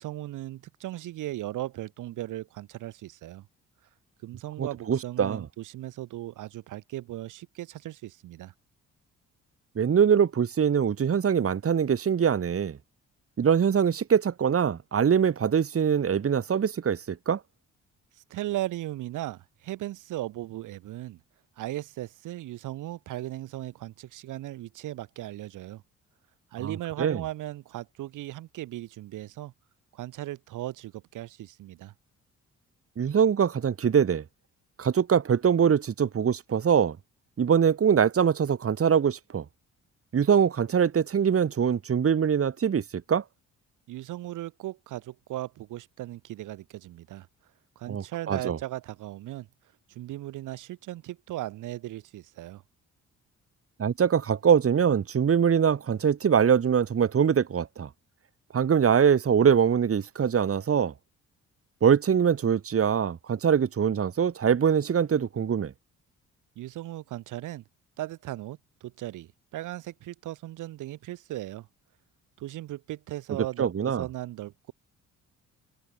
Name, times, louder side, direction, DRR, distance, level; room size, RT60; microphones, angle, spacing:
voice 1, 0.0-3.5 4.2-8.5 18.2-21.2 21.6-25.8 26.5-29.5 29.9-31.9 43.9-47.3 47.8-49.5 49.9-52.6 66.6-67.6 68.0-71.7 72.4-74.7, right 15 dB, 85° right, 7.0 m, -37 dB
voice 2, 4.6-5.4 9.8-12.8 13.4-17.4 26.6-26.7 27.0-27.2 33.0-34.2 34.8-37.0 37.4-39.4 40.1-43.2 47.9-48.6 53.8-57.9 58.5-60.9 61.8-65.7 73.6-74.0, right 7 dB, 50° right, 4.1 m, -23 dB
open air
cardioid pair, 90°, 30 cm